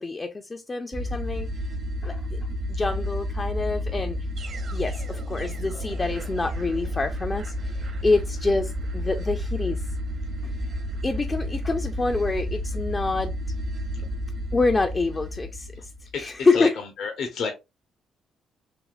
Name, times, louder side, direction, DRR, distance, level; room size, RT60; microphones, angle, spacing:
voice 1, 0.0-1.5 2.0-2.4 2.7-4.2 4.7-9.8 10.4-10.5 11.0-13.3 14.5-15.9 16.2-16.7, left 3 dB, 25° left, 0.3 m, -26 dB
sound 1, 0.9-16.3, equal, 55° right, 0.8 m, -31 dB
voice 2, 16.1-17.5, left 5 dB, 75° left, 0.8 m, -30 dB
3.4 x 2.8 x 2.3 m
cardioid pair, 90°, 0 cm